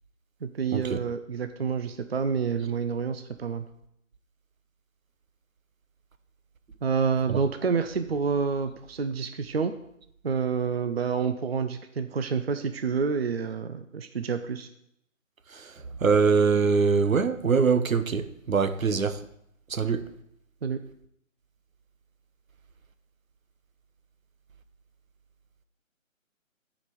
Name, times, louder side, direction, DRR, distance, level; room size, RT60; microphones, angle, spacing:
voice 1, 0.4-3.6 6.8-9.7 10.2-14.7 20.6-20.8, right 5 dB, 50° right, 0.6 m, -28 dB
voice 2, 16.0-19.2 19.7-20.0, right 5 dB, 80° right, 1.0 m, -23 dB
8.4 x 5.1 x 7.5 m
figure-of-eight pair, 160°, 40 cm